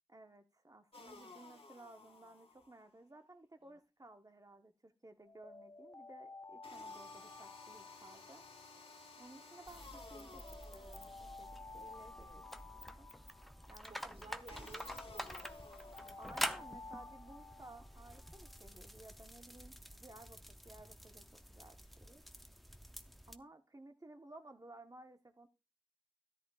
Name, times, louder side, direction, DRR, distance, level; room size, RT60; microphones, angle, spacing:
voice 1, 0.1-8.4 9.2-12.3 12.6-13.1 13.7-14.3 16.2-22.2 23.3-25.5, right 2 dB, 40° right, 1.2 m, -57 dB
sound 1, 0.9-2.9 6.6-11.9 14.5-16.9, left 3 dB, 80° left, 1.8 m, -56 dB
Alarm, 5.2-9.4 9.9-14.4 14.9-18.7, left 3 dB, 35° left, 0.5 m, -54 dB
sound 2, 9.7-23.4, equal, ahead, 0.7 m, -48 dB
voice 2, 12.1-12.5 13.8-15.7, right 3 dB, 80° right, 1.1 m, -57 dB
13.5 x 11.0 x 2.4 m
wide cardioid pair, 50°, 10 cm